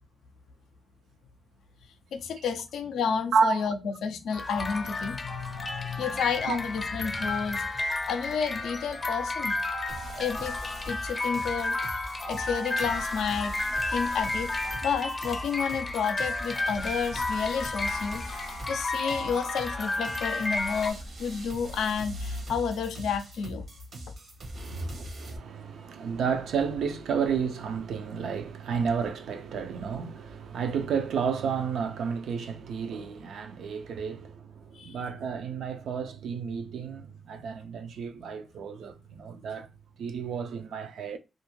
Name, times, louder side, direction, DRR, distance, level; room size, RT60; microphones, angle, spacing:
voice 1, 2.1-9.5 10.2-10.6 10.9-13.5 13.9-14.5 14.8-18.2 18.7-23.6 24.7-24.8 34.7-35.0, left 6 dB, 90° left, 0.4 m, -31 dB
voice 2, 3.3-3.7 6.5-6.6 24.6-39.7 40.0-41.2, right 6 dB, 80° right, 0.3 m, -31 dB
sound 1, 4.3-20.9, left 2 dB, 35° left, 0.5 m, -32 dB
sound 2, 9.9-25.4, right 1 dB, 65° right, 0.7 m, -42 dB
2.4 x 2.1 x 3.0 m
cardioid pair, 70°, 0 cm